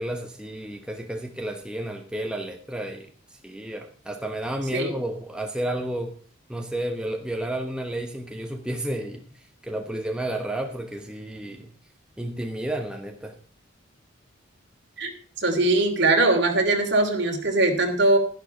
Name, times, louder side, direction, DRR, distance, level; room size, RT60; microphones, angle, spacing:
voice 1, 0.0-6.2 6.5-11.7 12.2-13.4, right 1 dB, 5° right, 3 dB, 1.0 m, -32 dB
voice 2, 15.4-18.2, right 2 dB, 55° right, 3 dB, 2.8 m, -21 dB
12.0 x 11.5 x 4.3 m, 0.42 s
head